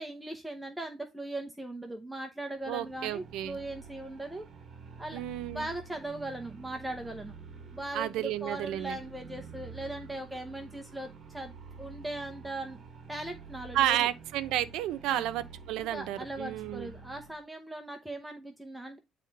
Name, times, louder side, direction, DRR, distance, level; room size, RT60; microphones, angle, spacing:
voice 1, 0.0-4.5 5.0-5.2 5.5-7.3 7.7-11.5 11.8-12.8 13.1-14.1 15.1-15.3 15.8-19.0, right 1 dB, 5° right, 0.8 m, -39 dB
sound 1, 2.6-17.4, right 5 dB, 30° right, 1.3 m, -49 dB
voice 2, 2.7-3.6 5.1-5.7 7.9-9.0 13.7-16.9, right 13 dB, 80° right, 0.8 m, -31 dB
9.4 x 3.5 x 4.0 m
cardioid pair, 175°, 0 cm